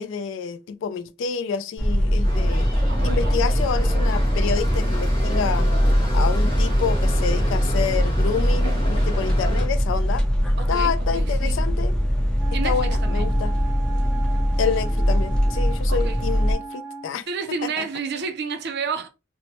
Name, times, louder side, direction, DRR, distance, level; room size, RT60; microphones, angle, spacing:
voice 1, 0.0-2.8 3.0-5.7 6.1-10.2 10.7-11.9 12.6-13.5 14.6-17.3 17.6-17.8, left 6 dB, 70° left, 0.3 m, -28 dB
sound 1, 1.8-16.5, equal, 5° left, 0.6 m, -21 dB
sound 2, 2.2-9.7, equal, 25° left, 1.0 m, -30 dB
voice 2, 2.9-3.4 10.0-10.1 10.6-11.6 12.5-13.4 15.9-16.2 17.3-19.1, right 5 dB, 55° right, 0.5 m, -31 dB
Wind instrument woodwind instrument, 12.3-17.1, right 4 dB, 15° right, 1.4 m, -37 dB
2.9 x 2.0 x 2.9 m
head